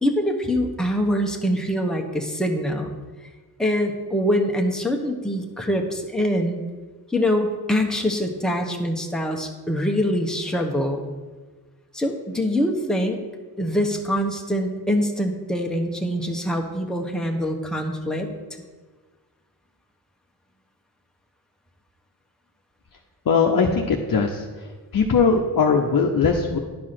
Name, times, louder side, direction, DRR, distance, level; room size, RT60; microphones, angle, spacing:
voice 1, 0.0-2.9 3.6-6.6 7.1-11.1 11.9-13.2 13.6-18.3, equal, ahead, 2 dB, 1.0 m, -24 dB
voice 2, 23.3-24.4 24.9-26.6, left 5 dB, 60° left, 1 dB, 0.8 m, -20 dB
10.5 x 4.7 x 5.9 m, 1.4 s
wide cardioid pair, 95°, 39 cm